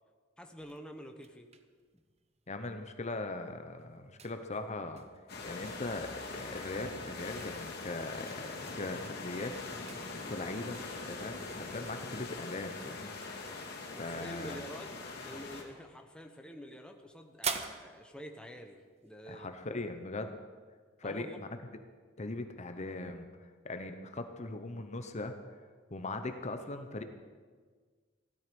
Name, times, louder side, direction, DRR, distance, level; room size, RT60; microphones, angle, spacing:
voice 1, 0.4-1.5 1.9-2.0 13.9-19.5 21.0-21.5, equal, 5° left, 4 dB, 1.0 m, -48 dB
sound 1, 0.6-19.4, right 6 dB, 35° right, 0.9 m, -49 dB
voice 2, 2.5-5.0 5.4-9.5 9.9-10.0 10.3-10.8 11.1-13.1 13.4-13.7 14.0-14.6 19.3-20.4 21.0-21.5 22.2-23.2 23.6-25.3 25.9-27.0, left 2 dB, 35° left, 7 dB, 0.9 m, -40 dB
sound 2, 5.3-15.6, left 3 dB, 55° left, 2.5 m, -42 dB
16.0 x 13.0 x 5.3 m, 1.5 s
head